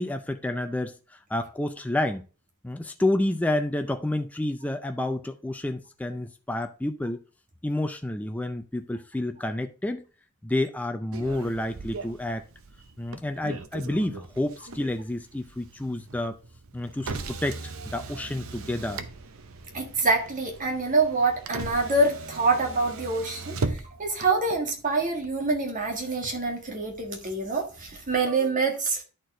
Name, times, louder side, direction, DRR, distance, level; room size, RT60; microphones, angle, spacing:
voice 1, 0.0-2.3 2.6-7.2 7.6-10.0 10.4-12.4 13.0-16.4 16.7-19.0, left 1 dB, 5° left, 0.4 m, -29 dB
Motor vehicle (road), 11.1-28.3, right 3 dB, 65° right, 0.8 m, -39 dB
voice 2, 19.7-29.0, right 3 dB, 35° right, 1.8 m, -26 dB
11.0 x 4.5 x 3.8 m
head